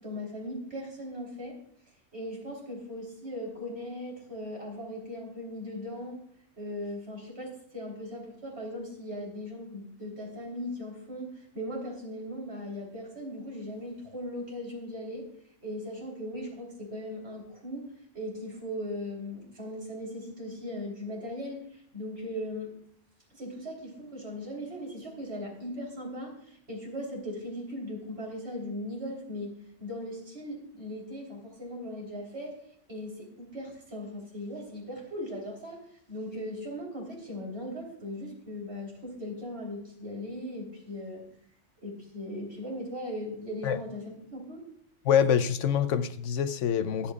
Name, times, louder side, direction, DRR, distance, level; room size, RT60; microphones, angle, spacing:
voice 1, 0.0-1.6 2.1-6.2 6.6-15.3 15.6-22.7 23.3-29.5 29.8-32.6 32.9-41.3 41.8-44.6, left 1 dB, 60° right, -1 dB, 4.2 m, -38 dB
voice 2, 45.0-47.1, left 8 dB, 85° left, 12 dB, 1.1 m, -25 dB
24.0 x 8.8 x 2.4 m, 0.66 s
omnidirectional pair, 1.2 m